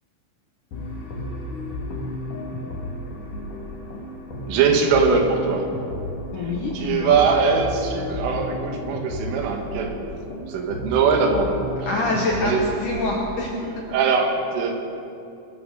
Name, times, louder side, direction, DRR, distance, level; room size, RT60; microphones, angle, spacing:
sound 1, 0.7-13.5, left 1 dB, 50° left, 3.1 m, -33 dB
voice 1, 4.5-5.7 6.8-10.1 10.5-11.7 12.4-12.6 13.9-14.7, right 5 dB, 85° right, 3 dB, 4.0 m, -21 dB
voice 2, 6.3-7.2 11.8-13.5, left 2 dB, 70° left, -2 dB, 1.9 m, -25 dB
22.0 x 13.0 x 4.0 m, 2.7 s
omnidirectional pair, 5.6 m